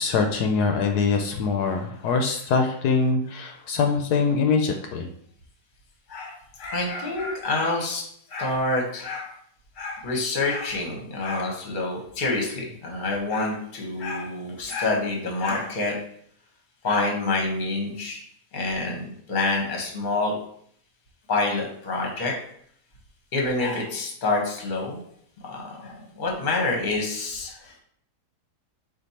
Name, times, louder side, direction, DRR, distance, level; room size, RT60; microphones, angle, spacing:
voice 1, 0.0-5.1, left 4 dB, 80° left, 4 dB, 1.1 m, -23 dB
voice 2, 6.1-8.0 8.3-9.3 9.8-15.9 16.8-18.2 18.5-20.3 21.3-22.3 23.3-25.0 25.5-27.8, left 2 dB, 35° left, 0 dB, 1.0 m, -27 dB
4.4 x 2.7 x 4.1 m, 0.65 s
omnidirectional pair, 1.7 m